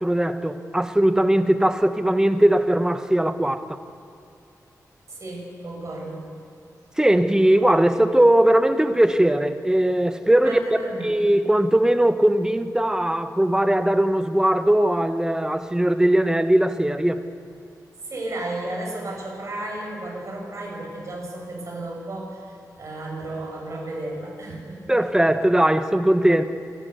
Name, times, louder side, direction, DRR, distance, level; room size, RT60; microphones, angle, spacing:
voice 1, 0.0-3.8 7.0-10.6 11.0-17.2 24.9-26.5, right 1 dB, 10° right, 1.2 m, -19 dB
voice 2, 5.1-6.3 10.4-11.2 18.1-22.5 22.8-24.9, right 1 dB, 50° right, 7.4 m, -33 dB
28.0 x 12.0 x 8.2 m
cardioid pair, 80°, 7 cm